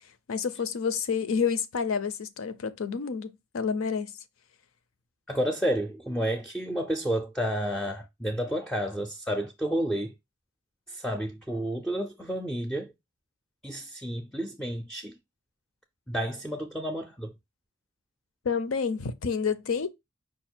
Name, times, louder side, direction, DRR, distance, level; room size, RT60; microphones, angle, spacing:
voice 1, 0.3-4.1 18.4-19.9, left 6 dB, 75° left, 0.5 m, -29 dB
voice 2, 5.3-10.1 10.9-12.9 13.6-15.2 16.1-17.3, equal, 5° left, 0.4 m, -30 dB
4.9 x 2.4 x 4.3 m
head